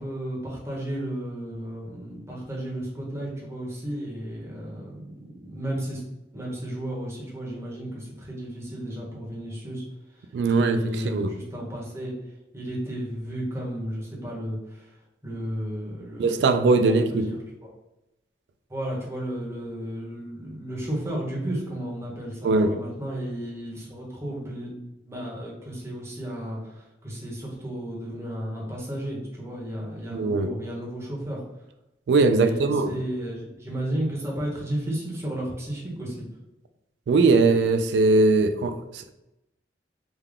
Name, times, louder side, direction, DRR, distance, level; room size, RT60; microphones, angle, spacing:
voice 1, 0.0-5.1 5.4-6.0 6.3-9.8 10.1-12.2 12.5-15.0 15.2-17.3 18.7-24.7 25.0-31.4 32.4-36.2, right 1 dB, 15° right, 1.0 m, -33 dB
voice 2, 10.3-11.3 16.2-17.3 22.4-22.8 30.1-30.5 32.1-32.9 37.1-39.1, right 3 dB, 70° right, 0.3 m, -21 dB
3.5 x 2.2 x 3.6 m
head